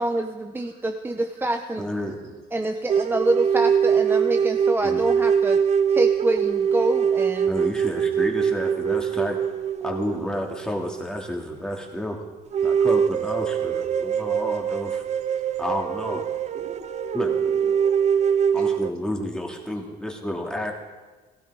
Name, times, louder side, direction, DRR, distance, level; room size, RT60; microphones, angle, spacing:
voice 1, 0.0-1.9 2.5-5.6 5.9-7.6, right 2 dB, 10° right, 5 dB, 0.9 m, -26 dB
voice 2, 0.6-1.5 2.0-2.2 14.1-14.2 16.5-17.8 18.6-18.7, right 2 dB, 65° right, -1 dB, 3.9 m, -44 dB
voice 3, 1.8-2.4 4.8-5.0 7.4-9.4 9.8-12.2 12.6-15.0 15.6-16.2 17.1-17.3 18.5-20.7, left 1 dB, 5° left, 0 dB, 2.5 m, -30 dB
sound 1, 2.9-11.5 11.9-12.0 12.5-18.9, right 7 dB, 40° right, 0.6 m, -23 dB
17.0 x 15.5 x 4.9 m, 1.3 s
cardioid pair, 110°, 17 cm